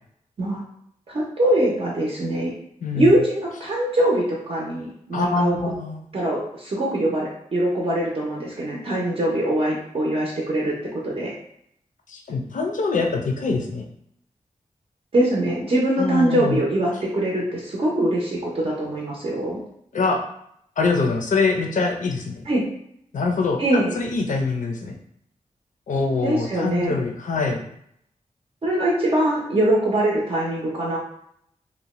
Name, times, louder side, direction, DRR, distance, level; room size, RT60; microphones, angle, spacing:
voice 1, 1.1-2.5 2.9-5.5 6.1-11.3 15.1-19.6 22.5-22.6 23.6-24.0 26.2-26.9 28.6-31.0, right 1 dB, 45° right, -4 dB, 0.5 m, -22 dB
voice 2, 2.8-3.1 5.1-6.0 12.1-13.8 16.0-16.6 19.9-20.2 20.8-22.4 23.1-25.0 25.9-27.6, left 4 dB, 70° left, 2 dB, 0.5 m, -24 dB
2.7 x 2.1 x 2.9 m, 0.73 s
wide cardioid pair, 150°, 14 cm